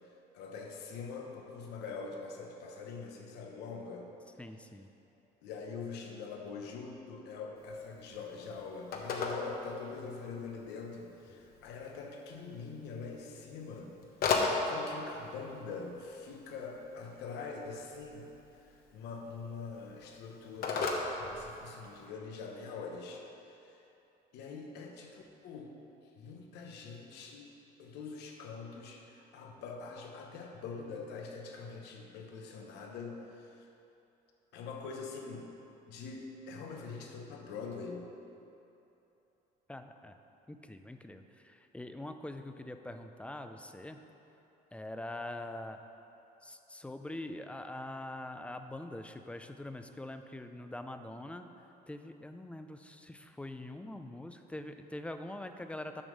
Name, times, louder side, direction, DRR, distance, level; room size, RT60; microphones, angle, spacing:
voice 1, 0.3-4.1 5.4-14.0 14.3-18.3 18.6-23.8 24.3-25.7 26.2-27.5 27.8-33.7 34.5-35.5 35.9-38.0, left 4 dB, 90° left, 2 dB, 1.0 m, -44 dB
voice 2, 4.4-4.9 39.7-40.1 40.5-44.0 44.7-45.8 46.4-51.4 51.9-56.0, left 1 dB, 5° left, 7 dB, 0.4 m, -44 dB
Telephone, 7.6-22.1, left 4 dB, 60° left, 1.0 m, -39 dB
7.2 x 5.3 x 6.4 m, 2.9 s
cardioid pair, 110°, 17 cm